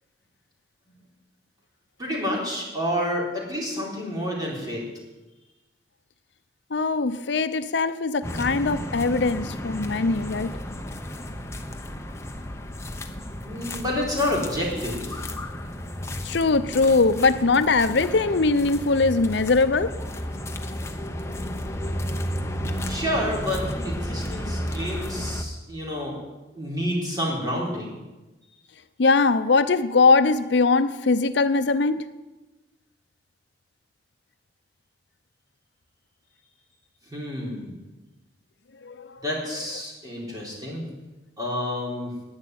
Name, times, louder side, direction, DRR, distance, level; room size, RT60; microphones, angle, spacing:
voice 1, 2.0-4.8 13.4-15.2 22.9-26.1 26.5-28.0 37.0-37.7 39.2-40.9 41.4-42.1, equal, 20° right, 4.1 m, -29 dB
voice 2, 6.7-10.5 16.2-19.9 29.0-32.0 38.9-39.1, left 3 dB, 70° left, 0.6 m, -21 dB
sound 1, 8.2-25.4, left 1 dB, 15° left, 0.9 m, -33 dB
11.0 x 9.7 x 9.2 m
head